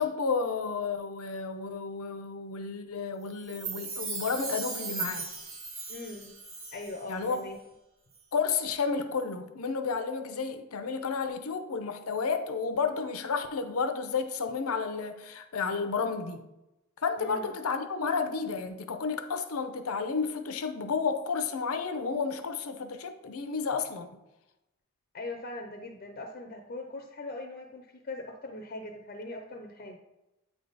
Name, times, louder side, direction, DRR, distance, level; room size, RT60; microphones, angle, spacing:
voice 1, 0.0-5.3 7.1-7.4 8.3-16.5 17.0-24.1, left 5 dB, 90° left, 0.6 m, -31 dB
Chime, 3.4-7.0 7.3-7.4, right 4 dB, 65° right, 1.2 m, -38 dB
voice 2, 5.9-6.3 6.7-7.6 17.2-17.5 25.1-30.0, left 2 dB, 45° left, 0.5 m, -40 dB
8.4 x 3.5 x 3.9 m
head